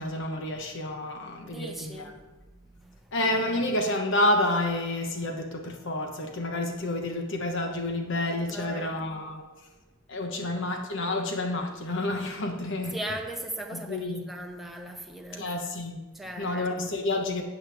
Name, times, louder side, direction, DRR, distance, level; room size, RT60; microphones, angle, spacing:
voice 1, 0.0-2.1 3.1-9.5 10.1-13.0 13.7-14.2 15.4-16.0 16.4-17.4, left 1 dB, 60° left, 1.2 m, -29 dB
voice 2, 1.4-2.2 2.5-3.1 8.5-9.0 12.9-15.5 16.1-16.9, right 1 dB, ahead, 0.9 m, -39 dB
13.0 x 8.1 x 3.5 m
head